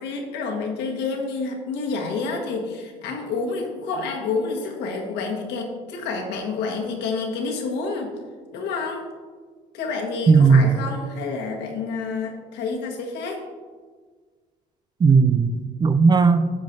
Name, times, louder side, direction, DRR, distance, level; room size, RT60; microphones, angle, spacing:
voice 1, 0.0-8.1 8.5-9.1 9.7-13.4, left 4 dB, 85° left, 1 dB, 1.5 m, -29 dB
voice 2, 10.3-10.8 15.0-16.5, right 5 dB, 25° right, 12 dB, 0.4 m, -16 dB
9.9 x 7.4 x 2.7 m, 1.5 s
cardioid pair, 110°, 17 cm